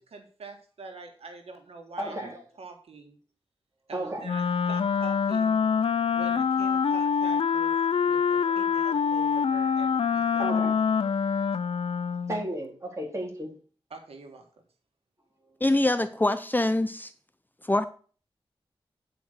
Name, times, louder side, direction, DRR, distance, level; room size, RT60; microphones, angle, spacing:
voice 1, 0.1-2.2 2.6-3.2 3.9-5.6 6.1-7.7 8.0-10.6 11.0-11.1 13.9-14.5, right 3 dB, 85° right, 4 dB, 1.6 m, -45 dB
voice 2, 2.0-2.4 3.9-4.3 8.6-8.7 10.4-10.8 12.3-13.5, right 1 dB, 30° right, -1 dB, 3.9 m, -33 dB
Wind instrument woodwind instrument, 4.2-12.5, left 6 dB, 70° left, 0.5 m, -25 dB
voice 3, 15.6-17.1 17.6-17.8, left 2 dB, 20° left, 11 dB, 0.6 m, -24 dB
9.4 x 5.1 x 6.6 m, 0.41 s
wide cardioid pair, 70°, 10 cm